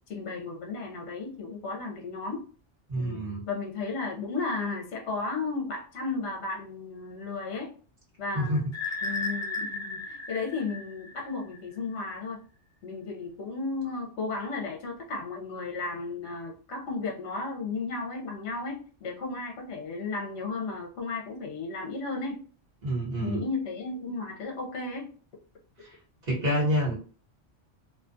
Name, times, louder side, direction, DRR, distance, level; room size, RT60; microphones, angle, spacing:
voice 1, 0.1-2.4 2.9-7.7 8.2-8.6 9.0-12.4 12.8-22.4 23.2-25.1, left 3 dB, 70° left, 1 dB, 0.9 m, -34 dB
voice 2, 2.9-3.4 8.3-8.7 22.8-23.4 26.3-26.9, equal, 40° right, -4 dB, 1.1 m, -27 dB
sound 1, 8.7-11.6, left 3 dB, 25° left, 0.3 m, -34 dB
2.6 x 2.3 x 2.5 m, 0.41 s
omnidirectional pair, 1.2 m